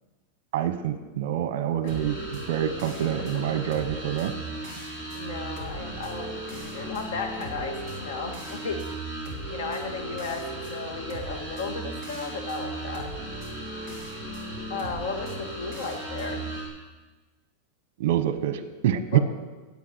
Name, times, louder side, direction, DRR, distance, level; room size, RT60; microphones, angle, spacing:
voice 1, 0.5-4.3 18.0-19.2, right 11 dB, 55° right, 11 dB, 1.1 m, -26 dB
sound 1, 1.9-16.6, right 1 dB, 20° left, 4.0 m, -36 dB
voice 2, 2.8-3.8 4.8-8.8 9.5-13.1 14.7-16.4 19.1-19.2, left 4 dB, 90° left, 5 dB, 2.3 m, -35 dB
10.5 x 8.6 x 9.9 m, 1.2 s
supercardioid pair, 175°, 0 cm